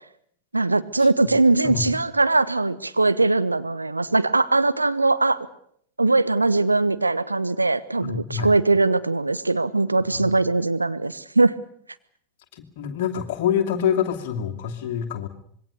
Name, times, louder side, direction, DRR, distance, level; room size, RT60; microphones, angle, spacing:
voice 1, 0.5-5.5 6.0-11.5, right 2 dB, 80° right, 13 dB, 1.1 m, -21 dB
voice 2, 8.0-8.5 10.0-10.3 12.5-15.3, left 8 dB, 50° left, 4 dB, 2.8 m, -26 dB
25.5 x 21.5 x 6.7 m, 0.67 s
figure-of-eight pair, 90°, 0 cm